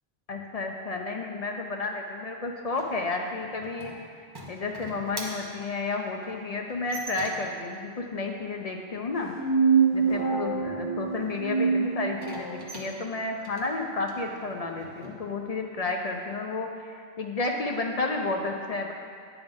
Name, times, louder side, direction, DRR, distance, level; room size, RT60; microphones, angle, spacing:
voice 1, 0.3-3.9 4.5-9.3 9.9-18.9, left 3 dB, 50° left, 2 dB, 0.4 m, -31 dB
sound 1, 2.7-7.7 12.1-15.1, right 1 dB, 25° right, 0.8 m, -44 dB
sound 2, 9.1-12.6, right 5 dB, 85° left, 1.5 m, -25 dB
8.9 x 3.5 x 5.2 m, 2.2 s
omnidirectional pair, 1.1 m